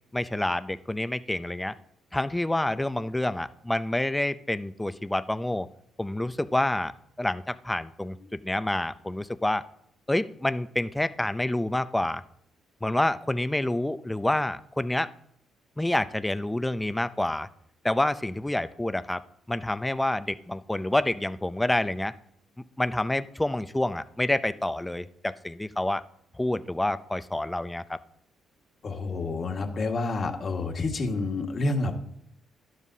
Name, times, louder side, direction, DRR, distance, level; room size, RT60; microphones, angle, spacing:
voice 1, 0.1-1.8 2.1-5.7 6.0-6.9 7.2-9.6 10.1-12.2 12.8-15.1 15.8-17.5 17.8-19.2 19.5-22.1 22.8-26.0 26.4-28.0, left 1 dB, 10° left, 13 dB, 0.5 m, -28 dB
voice 2, 28.8-31.9, left 3 dB, 45° left, 3 dB, 1.7 m, -29 dB
12.5 x 11.5 x 2.8 m, 0.71 s
cardioid pair, 90°, 0 cm